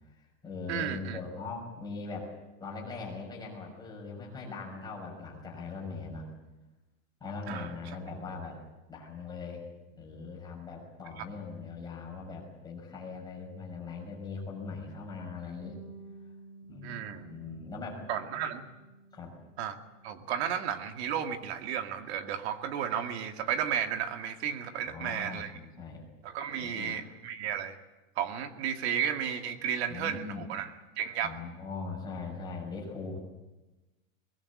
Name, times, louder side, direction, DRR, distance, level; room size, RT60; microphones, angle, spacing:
voice 1, 0.1-2.3 2.6-6.3 7.2-8.6 8.9-9.7 10.0-15.8 16.7-18.3 19.1-19.3 24.8-26.1 26.5-27.0 29.9-30.5 31.2-33.2, left 4 dB, 10° left, -2 dB, 6.1 m, -41 dB
voice 2, 0.7-1.2 7.5-7.7 11.2-11.3 16.8-17.3 18.1-18.7 19.6-19.8 20.0-25.5 26.2-27.8 28.2-30.7 31.0-31.3, right 8 dB, 50° right, 7 dB, 2.2 m, -33 dB
Bass guitar, 15.6-21.9, right 3 dB, 35° right, 6.2 m, -54 dB
23.5 x 20.0 x 8.5 m, 1.1 s
supercardioid pair, 175°, 41 cm